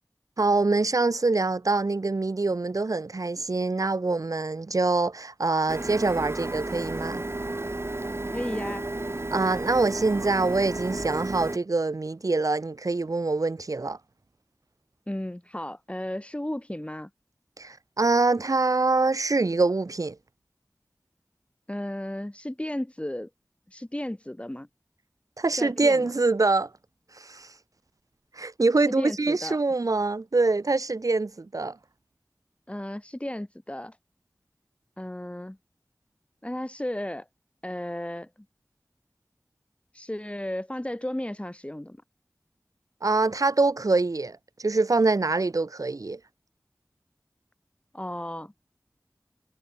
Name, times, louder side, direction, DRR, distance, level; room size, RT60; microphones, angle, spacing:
voice 1, 0.4-7.2 9.3-14.0 17.6-20.2 25.4-26.7 27.1-27.5 28.3-31.8 43.0-46.2, right 3 dB, 70° right, 0.9 m, -25 dB
Printer, 5.7-11.6, right 2 dB, 45° right, 1.8 m, -32 dB
voice 2, 8.3-8.9 15.1-17.1 21.7-23.3 23.7-24.7 25.5-26.1 28.9-29.6 32.7-34.0 35.0-35.6 36.4-37.3 37.6-38.3 39.9-42.0 47.9-48.5, left 1 dB, 20° left, 7.2 m, -34 dB
wide cardioid pair, 55°, 6 cm